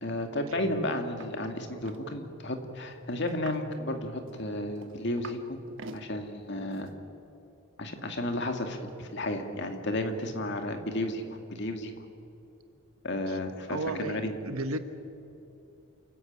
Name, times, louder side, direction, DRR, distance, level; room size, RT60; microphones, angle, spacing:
voice 1, 0.0-5.6 5.9-6.9 7.8-11.2 11.5-11.9 13.0-14.3, left 1 dB, 55° left, 5 dB, 2.1 m, -33 dB
sound 1, 1.2-1.3 1.6-2.0 3.3-3.7 4.3-5.4 5.7-6.1 6.7-6.9, right 2 dB, 60° right, 1.3 m, -46 dB
voice 2, 13.7-14.8, right 2 dB, 80° right, 9 dB, 1.4 m, -33 dB
28.5 x 14.5 x 8.8 m, 3.0 s
head